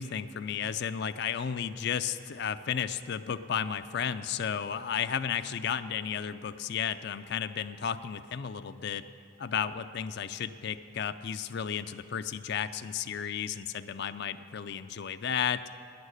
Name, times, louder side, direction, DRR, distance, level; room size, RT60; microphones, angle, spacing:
voice 1, 0.0-9.0 9.4-15.6, left 8 dB, 55° left, 11 dB, 0.4 m, -33 dB
11.0 x 9.0 x 9.8 m, 2.4 s
head